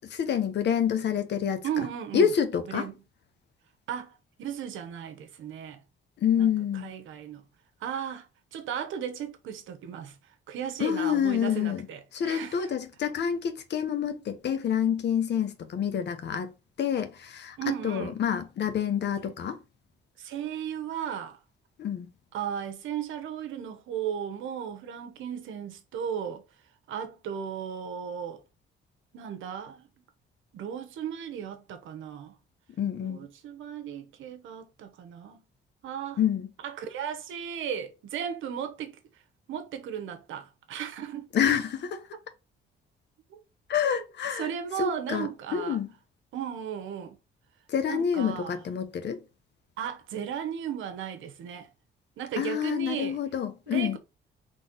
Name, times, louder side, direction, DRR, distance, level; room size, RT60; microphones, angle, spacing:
voice 1, 0.0-1.9 2.1-2.9 6.2-6.9 10.8-11.9 12.1-16.5 16.8-17.6 17.8-19.6 21.8-22.1 32.8-33.3 36.2-36.5 41.3-42.1 43.7-44.5 44.8-45.9 47.7-49.2 52.4-54.0, left 8 dB, 60° left, 0.9 m, -27 dB
voice 2, 1.6-2.3 2.7-2.9 3.9-5.8 6.4-6.5 6.8-7.4 7.8-10.1 10.5-12.6 17.6-18.2 19.2-19.3 20.2-21.4 22.3-26.4 26.9-28.4 29.1-29.8 30.5-32.3 33.0-35.4 35.8-36.2 36.6-39.0 39.5-41.3 43.3-43.4 43.8-44.0 44.4-45.8 46.3-47.2 47.9-48.6 49.8-51.7 52.2-53.2 53.7-54.0, right 8 dB, 80° right, 0.9 m, -35 dB
4.1 x 3.4 x 3.8 m
cardioid pair, 90°, 20 cm